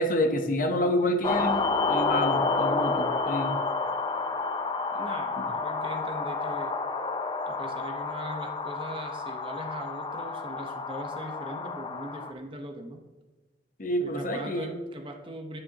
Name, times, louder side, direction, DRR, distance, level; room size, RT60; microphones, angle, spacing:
voice 1, 0.0-1.6 1.9-3.6 13.8-14.7, left 1 dB, 50° left, 5 dB, 1.0 m, -28 dB
sound 1, 1.2-12.3, left 3 dB, 25° left, 0.6 m, -30 dB
voice 2, 4.9-6.7 7.5-13.0 14.0-15.6, right 1 dB, 30° right, 4 dB, 1.0 m, -40 dB
9.6 x 9.5 x 3.0 m, 1.2 s
head